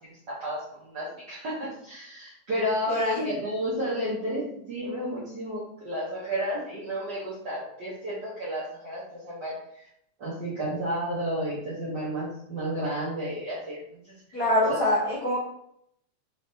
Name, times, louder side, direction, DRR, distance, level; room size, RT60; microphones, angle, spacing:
voice 1, 0.0-9.9 10.2-14.4 14.7-14.8, equal, 65° right, -8 dB, 1.0 m, -32 dB
voice 2, 2.9-3.3 14.3-15.4, left 1 dB, 75° left, -7 dB, 0.9 m, -25 dB
4.9 x 3.4 x 2.8 m, 0.74 s
omnidirectional pair, 3.5 m